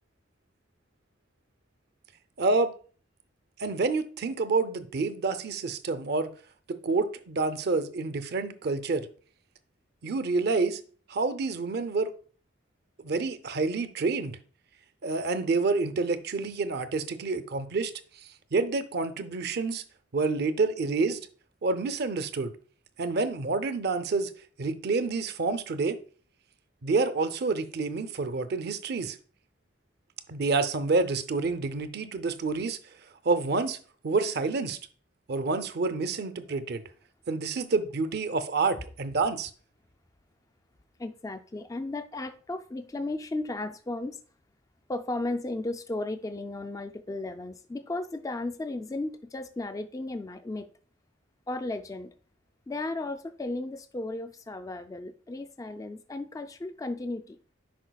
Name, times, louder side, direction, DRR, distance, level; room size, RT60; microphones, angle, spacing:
voice 1, 2.4-2.7 3.6-6.3 6.7-9.1 10.0-10.8 11.1-12.1 13.0-14.4 15.0-17.9 18.5-19.8 20.1-21.3 21.6-22.5 23.0-24.3 24.6-26.0 26.8-29.2 30.3-32.8 33.2-33.8 34.0-34.8 35.3-36.8 37.3-39.5, right 3 dB, 55° right, 0.5 m, -28 dB
voice 2, 41.0-44.2 44.9-50.7 51.5-52.1 52.7-57.4, left 2 dB, 15° left, 0.3 m, -35 dB
10.0 x 4.9 x 2.2 m
head